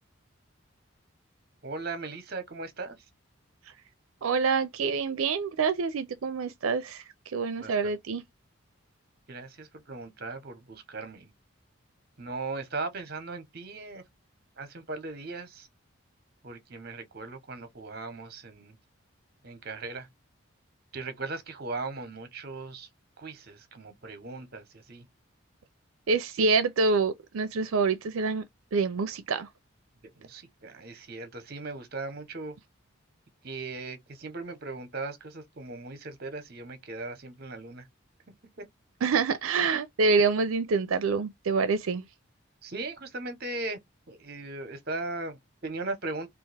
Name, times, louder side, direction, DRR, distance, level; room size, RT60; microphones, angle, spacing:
voice 1, 1.6-3.0 7.6-8.0 9.3-11.3 12.2-14.0 14.6-15.7 16.4-18.8 19.4-20.1 20.9-22.9 23.2-25.1 30.2-32.6 33.4-37.9 38.6-38.7 42.6-43.8 44.1-46.3, right 3 dB, 45° right, 0.9 m, -38 dB
voice 2, 4.2-8.2 26.1-28.4 28.7-29.5 39.0-42.0, right 4 dB, 80° right, 0.5 m, -26 dB
3.4 x 2.4 x 3.3 m
head